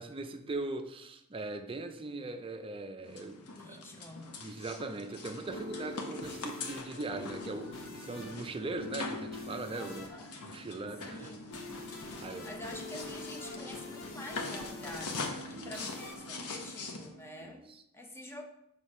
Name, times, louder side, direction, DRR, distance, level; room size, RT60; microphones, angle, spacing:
voice 1, 0.0-3.8 4.4-10.1 10.4-11.3 12.2-12.7 15.5-15.9 17.4-17.8, right 2 dB, 25° right, 0.5 m, -40 dB
sound 1, 3.0-17.1, left 3 dB, 90° left, 0.9 m, -43 dB
voice 2, 3.6-4.3 9.8-10.3 11.1-11.6 12.4-15.2 15.5-18.4, left 1 dB, 10° left, 0.8 m, -47 dB
sound 2, 5.1-17.5, left 2 dB, 65° left, 1.1 m, -45 dB
6.3 x 3.3 x 5.4 m
head